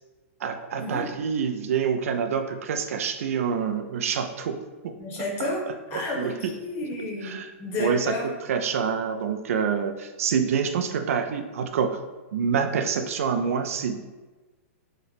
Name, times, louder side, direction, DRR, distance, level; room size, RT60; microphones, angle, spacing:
voice 1, 0.4-4.6 4.8-4.9 5.4-5.5 5.9-6.3 7.2-7.5 7.8-8.1 8.5-12.0 12.3-14.0, right 6 dB, 80° right, 7 dB, 0.3 m, -26 dB
voice 2, 5.0-5.6 5.9-8.3, left 2 dB, 30° left, -3 dB, 0.8 m, -31 dB
3.0 x 2.0 x 4.0 m, 1.2 s
hypercardioid pair, 160°, 8 cm